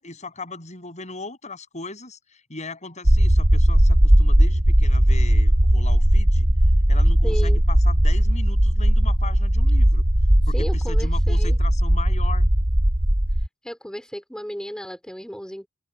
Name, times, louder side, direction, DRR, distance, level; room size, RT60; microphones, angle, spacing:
voice 1, 0.0-6.5 6.9-10.0 10.5-12.5, left 3 dB, 35° left, 7.8 m, -38 dB
sound 1, 3.0-13.5, equal, 45° right, 2.5 m, -18 dB
voice 2, 7.2-7.6 10.5-11.6 13.6-15.7, equal, 5° left, 4.6 m, -34 dB
head